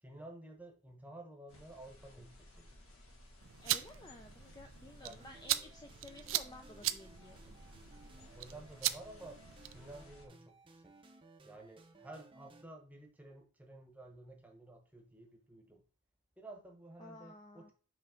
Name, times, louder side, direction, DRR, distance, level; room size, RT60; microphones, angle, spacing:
voice 1, 0.0-2.8 5.0-5.2 8.1-10.9 11.4-15.8 16.4-17.7, right 2 dB, 5° right, 1 dB, 1.0 m, -53 dB
sound 1, 1.5-10.3, left 1 dB, 75° left, 1.6 m, -58 dB
sound 2, 3.4-9.9, right 14 dB, 60° right, 0.4 m, -40 dB
voice 2, 3.6-7.6 17.0-17.7, left 2 dB, 20° left, 3 dB, 0.4 m, -54 dB
sound 3, 5.2-12.6, right 2 dB, 25° right, 0.6 m, -60 dB
5.7 x 3.2 x 5.1 m, 0.38 s
head